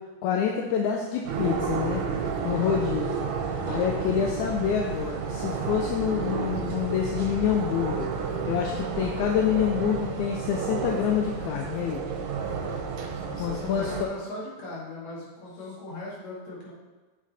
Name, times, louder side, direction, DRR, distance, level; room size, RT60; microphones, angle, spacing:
voice 1, 0.2-2.0 2.4-3.1 3.7-8.1 8.5-12.0 13.4-13.9, left 8 dB, 80° left, 1 dB, 1.9 m, -27 dB
sound 1, 1.2-14.0, right 5 dB, 70° right, 1.9 m, -31 dB
voice 2, 2.4-2.8 13.1-16.7, left 2 dB, 60° left, -6 dB, 3.1 m, -38 dB
7.4 x 5.1 x 4.1 m, 1.3 s
omnidirectional pair, 3.5 m